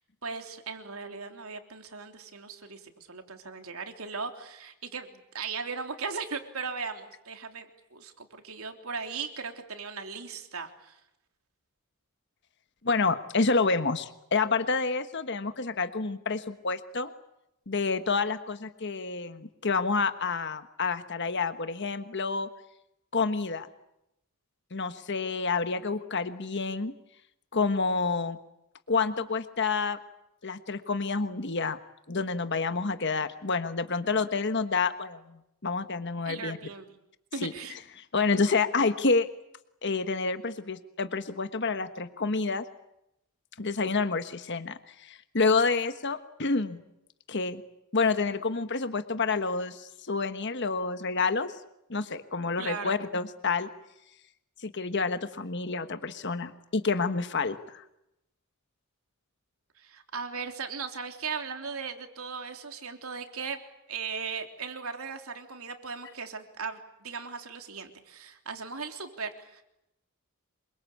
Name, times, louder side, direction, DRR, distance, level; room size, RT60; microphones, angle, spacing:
voice 1, 0.2-7.6 7.9-11.0 36.2-36.9 37.3-37.7 52.6-53.0 59.8-63.6 63.9-69.6, right 5 dB, 80° right, 5 dB, 3.5 m, -38 dB
voice 2, 12.8-17.1 17.7-22.5 23.1-23.7 24.7-26.9 27.5-28.4 28.9-30.0 30.4-31.8 32.1-36.6 37.4-37.5 38.0-39.3 39.8-42.6 43.6-46.8 47.3-47.6 47.9-51.5 51.9-53.7 54.6-57.8, left 4 dB, 55° left, 10 dB, 1.3 m, -28 dB
27.0 x 24.0 x 8.6 m, 0.85 s
head